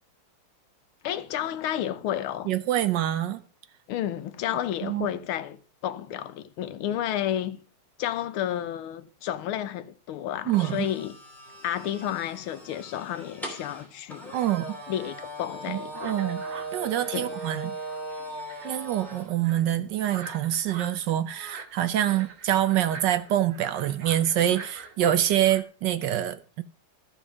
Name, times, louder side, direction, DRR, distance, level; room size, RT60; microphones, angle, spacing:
voice 1, 1.0-2.5 3.9-7.6 8.0-11.2 11.6-14.3 14.9-16.1 17.1-17.4, left 11 dB, 90° left, 1.6 m, -31 dB
voice 2, 2.5-3.4 4.8-5.1 10.5-10.9 14.3-14.8 15.7-17.7 18.6-26.6, right 12 dB, 70° right, 1.1 m, -26 dB
sound 1, 10.5-19.3, right 1 dB, ahead, 2.6 m, -39 dB
sound 2, 15.9-25.6, right 4 dB, 45° right, 1.6 m, -44 dB
13.5 x 4.9 x 6.1 m
omnidirectional pair, 2.3 m